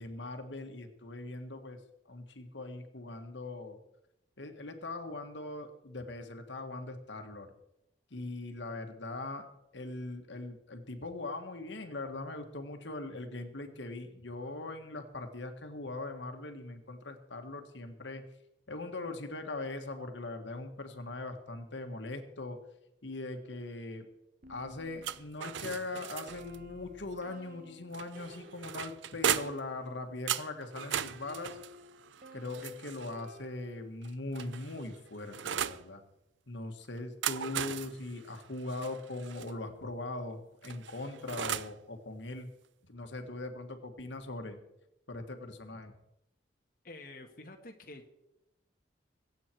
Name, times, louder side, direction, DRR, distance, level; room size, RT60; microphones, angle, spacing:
voice 1, 0.0-1.8 2.1-3.8 4.4-7.5 8.1-9.5 9.7-18.3 18.7-22.6 23.0-24.1 24.5-31.6 32.3-36.0 36.5-42.5 42.8-44.6 45.1-45.9, left 2 dB, 80° left, 6 dB, 1.7 m, -41 dB
sound 1, 24.4-30.4 31.0-34.2, equal, 45° right, 1.3 m, -54 dB
sound 2, 25.0-26.6 27.9-29.7 30.3-33.2 34.0-35.8 37.0-39.5 40.6-41.8, right 9 dB, 90° right, 0.6 m, -37 dB
voice 2, 46.8-48.1, left 2 dB, 50° left, 3 dB, 1.4 m, -48 dB
23.5 x 8.5 x 4.6 m, 0.86 s
head